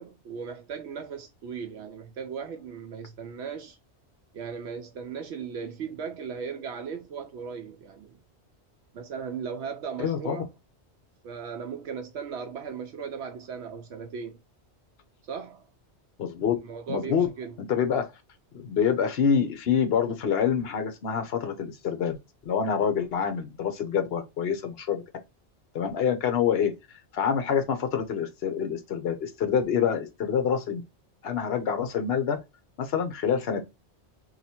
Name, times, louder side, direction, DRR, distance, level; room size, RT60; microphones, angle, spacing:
voice 1, 0.0-3.8 4.3-8.2 8.9-10.5 11.2-14.4 15.3-15.7 16.6-17.5, right 6 dB, 75° right, 0.9 m, -37 dB
voice 2, 10.0-10.4 16.2-16.5 16.9-17.3 17.7-18.1 18.5-22.2 22.5-25.0 25.7-26.7 27.1-30.8 31.2-32.4 32.8-33.6, left 7 dB, 65° left, 1.0 m, -26 dB
2.9 x 2.4 x 4.1 m
omnidirectional pair, 1.1 m